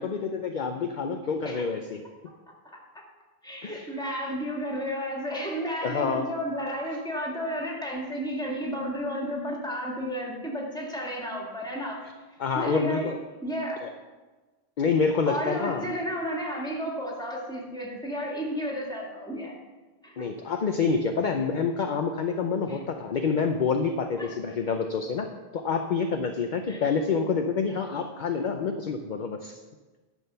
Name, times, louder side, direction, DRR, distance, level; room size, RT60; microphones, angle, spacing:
voice 1, 0.0-2.0 3.6-3.9 5.8-6.3 12.0-12.1 12.4-13.2 13.8-13.9 14.8-16.0 20.2-29.6, left 5 dB, 55° left, 5 dB, 0.7 m, -27 dB
voice 2, 2.7-3.0 3.4-12.0 12.6-13.1 13.4-13.8 15.2-19.6 20.0-20.3 22.7-22.8 24.2-24.3 26.7-26.8, equal, 5° left, -2 dB, 2.1 m, -32 dB
11.0 x 6.3 x 6.9 m, 1.3 s
omnidirectional pair, 1.1 m